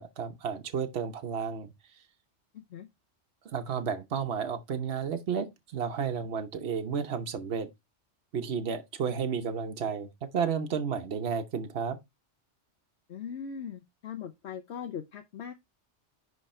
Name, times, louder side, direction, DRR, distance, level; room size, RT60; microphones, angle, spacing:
voice 1, 0.0-1.7 3.4-7.7 8.3-12.0, right 6 dB, 60° right, 1.1 m, -32 dB
voice 2, 2.5-2.9 13.1-15.5, left 7 dB, 70° left, 1.0 m, -40 dB
10.0 x 3.4 x 4.3 m
omnidirectional pair, 1.2 m